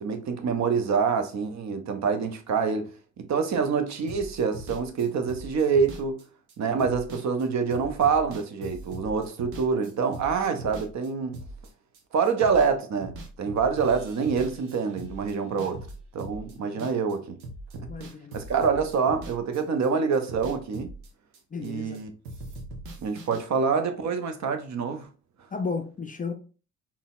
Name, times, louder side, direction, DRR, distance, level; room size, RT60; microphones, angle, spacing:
voice 1, 0.0-2.9 3.2-6.2 6.6-11.3 12.1-15.8 16.1-17.4 18.3-20.9 21.6-22.1 23.0-25.1, right 5 dB, 45° right, 0.7 m, -26 dB
sound 1, 4.1-12.7 13.0-17.1 17.4-22.0 22.2-23.4, right 1 dB, 75° right, 0.8 m, -41 dB
voice 2, 16.6-16.9 17.9-18.3 21.5-22.0 25.5-26.3, left 4 dB, 20° left, 0.4 m, -34 dB
3.8 x 2.1 x 2.3 m
hypercardioid pair, 50°, 41 cm